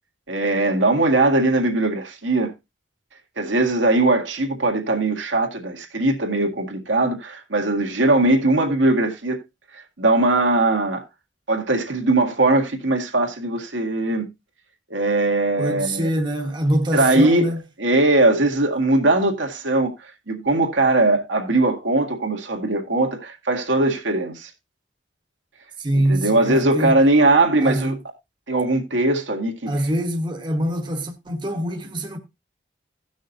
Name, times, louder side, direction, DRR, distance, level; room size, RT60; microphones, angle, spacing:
voice 1, 0.3-2.5 3.4-9.4 9.7-11.0 11.5-14.3 14.9-16.1 16.9-17.5 17.8-19.9 20.3-24.5 25.9-28.0 28.5-29.7, right 2 dB, 85° right, 1.9 m, -20 dB
voice 2, 15.6-17.6 25.8-27.0 27.6-28.0 29.7-32.2, right 1 dB, 25° right, 1.1 m, -24 dB
17.0 x 6.3 x 2.6 m
head